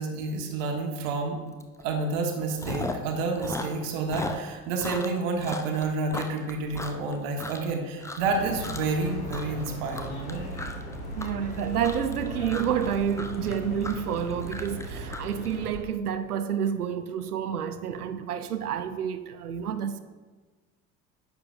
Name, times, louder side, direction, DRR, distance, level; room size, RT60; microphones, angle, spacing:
voice 1, 0.0-1.4 1.8-10.4, right 3 dB, 60° right, 1.4 m, -29 dB
Chewing mastication, 1.6-1.8 2.1-3.1 3.4-7.7 8.0-8.4 8.6-9.0 9.3-15.8, left 2 dB, 5° left, 0.6 m, -37 dB
sound 1, 8.2-15.7, equal, 85° left, 2.5 m, -38 dB
voice 2, 11.2-20.0, right 8 dB, 85° right, 0.6 m, -29 dB
9.9 x 7.0 x 2.5 m
figure-of-eight pair, 65°, 44 cm